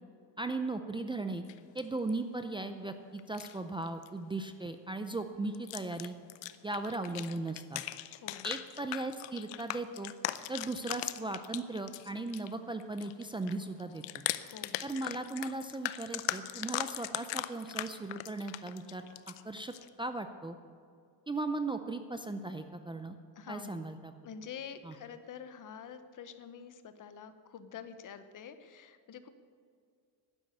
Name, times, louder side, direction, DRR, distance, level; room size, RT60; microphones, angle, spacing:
voice 1, 0.4-1.4 1.7-6.1 6.6-7.8 8.4-10.1 10.5-14.2 14.8-20.6 21.3-23.2 23.5-24.1 24.8-24.9, right 2 dB, 10° right, 8 dB, 0.5 m, -37 dB
sound 1, 1.5-2.1 3.2-3.6 3.9-4.1 4.5-4.7 5.5-12.5 12.8-19.9, left 15 dB, 90° left, 0.7 m, -39 dB
voice 2, 8.1-8.5 14.4-14.8 23.3-24.0 24.2-29.3, left 7 dB, 45° left, 10 dB, 1.0 m, -47 dB
11.5 x 10.5 x 8.0 m, 2.2 s
cardioid pair, 130°, 42 cm